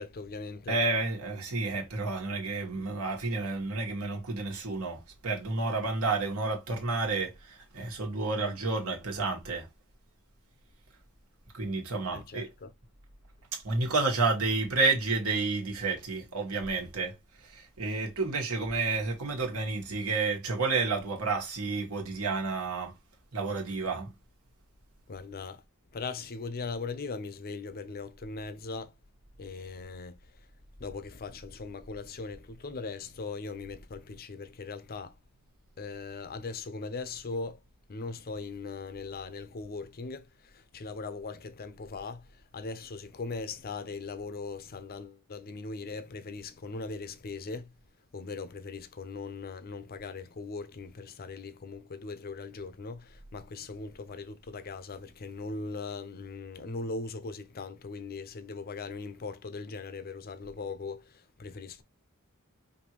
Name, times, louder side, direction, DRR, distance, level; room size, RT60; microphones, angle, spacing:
voice 1, 0.0-0.8 12.1-12.7 25.1-25.6 25.9-28.9 29.4-30.2 30.8-35.1 35.8-37.6 37.9-47.7 48.1-61.8, left 4 dB, 40° left, 0.6 m, -39 dB
voice 2, 0.7-9.7 11.5-12.5 13.5-17.2 17.4-22.9 23.3-24.1, right 3 dB, 70° right, 1.5 m, -30 dB
5.1 x 2.7 x 2.9 m
head